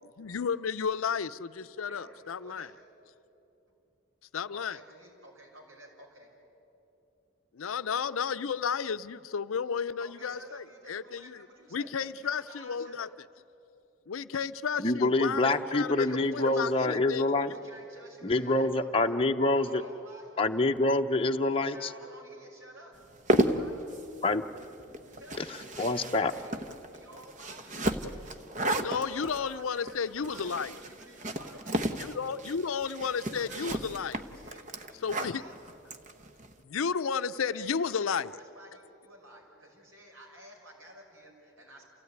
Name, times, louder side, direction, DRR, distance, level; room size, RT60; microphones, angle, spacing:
voice 1, 0.2-2.7 4.3-4.8 7.5-11.5 11.7-13.1 14.1-17.6 28.8-30.8 32.0-34.3 35.0-35.4 36.6-38.4, left 6 dB, 85° left, 14 dB, 0.6 m, -33 dB
voice 2, 1.8-2.7 4.5-6.3 10.0-13.1 15.9-16.8 17.5-19.2 19.5-20.5 21.5-22.9 23.2-23.9 25.1-26.6 26.9-28.4 29.1-31.6 33.3-33.7 34.2-35.5 37.5-41.8, right 1 dB, 85° right, 0 dB, 5.8 m, -52 dB
voice 3, 14.8-17.5 18.2-19.8 20.4-21.8 24.2-24.4 25.4-25.5 25.8-26.3, left 2 dB, 25° left, 4 dB, 0.7 m, -26 dB
sound 1, 23.0-36.5, right 1 dB, 40° right, 1.0 m, -33 dB
28.5 x 16.5 x 9.5 m, 2.9 s
head